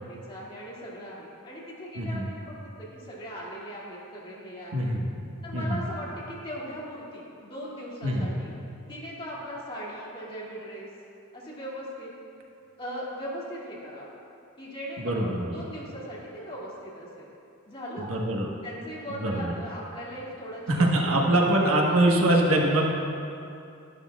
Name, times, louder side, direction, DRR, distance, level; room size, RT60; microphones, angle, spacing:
voice 1, 0.1-4.9 5.4-8.5 8.9-10.9 11.3-12.1 12.8-14.2 14.6-17.3 17.7-18.1 18.6-21.2 21.8-22.0, equal, 25° left, -7 dB, 2.4 m, -39 dB
voice 2, 2.0-2.3 4.7-5.0 5.5-5.8 8.0-8.3 15.0-15.6 18.0-18.5 19.1-19.5 20.7-22.8, right 1 dB, 80° right, -1 dB, 1.3 m, -24 dB
12.5 x 11.5 x 2.4 m, 2.6 s
head